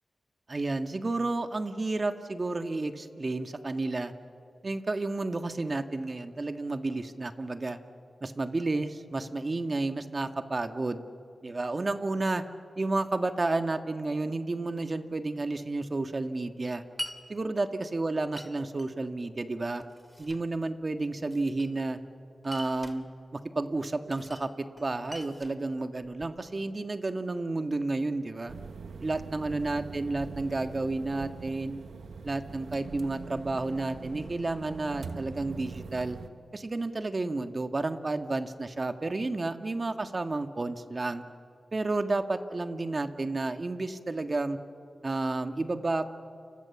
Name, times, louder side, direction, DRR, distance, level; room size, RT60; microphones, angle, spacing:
voice 1, 0.5-4.1 4.6-7.8 8.2-11.0 11.4-12.4 12.8-16.8 17.3-19.8 20.2-22.0 22.4-23.1 23.3-28.5 29.0-31.8 32.2-36.2 36.5-41.2 41.7-44.6 45.0-46.1, right 2 dB, 45° right, 8 dB, 1.7 m, -31 dB
Glass, 17.0-17.2 18.4-18.9 19.7-20.5 21.3-22.0 22.4-23.0 24.1-24.5 24.8-26.4, equal, 5° right, 2.8 m, -43 dB
sound 1, 28.5-36.3, right 5 dB, 85° right, 1.4 m, -43 dB
30.0 x 25.5 x 7.2 m, 2.4 s
cardioid pair, 50°, 0 cm